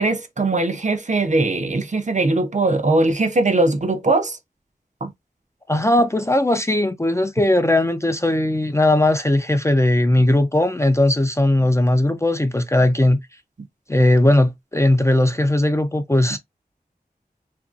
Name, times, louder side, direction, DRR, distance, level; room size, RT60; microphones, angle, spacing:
voice 1, 0.0-4.4 5.0-5.1, right 2 dB, 50° right, 0.6 m, -20 dB
voice 2, 5.7-13.2 13.9-16.4, left 1 dB, 15° left, 0.4 m, -18 dB
2.8 x 2.6 x 2.4 m
wide cardioid pair, 65°, 16 cm